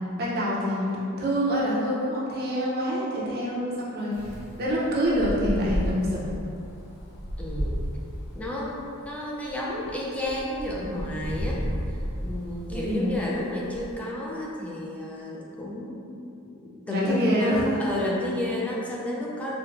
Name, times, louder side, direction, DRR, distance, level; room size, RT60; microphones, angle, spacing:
voice 1, 0.2-6.3 12.7-13.1 16.9-17.9, equal, 45° right, -6 dB, 0.7 m, -26 dB
Wind, 4.1-14.0, equal, 80° left, 0.6 m, -34 dB
voice 2, 7.4-7.8 8.3-11.6 12.2-16.5 16.9-17.5 17.8-19.5, left 1 dB, 5° left, -5 dB, 0.4 m, -31 dB
4.3 x 2.2 x 2.5 m, 2.7 s
head